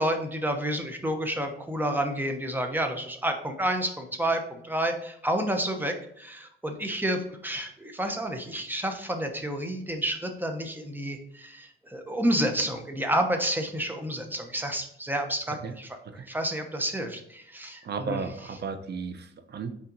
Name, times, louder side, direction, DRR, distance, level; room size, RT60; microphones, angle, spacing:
voice 1, 0.0-18.2, right 1 dB, 10° right, 5 dB, 0.9 m, -30 dB
voice 2, 17.8-19.7, right 5 dB, 55° right, 9 dB, 0.7 m, -34 dB
5.8 x 4.2 x 3.9 m, 0.70 s
cardioid pair, 120°, 21 cm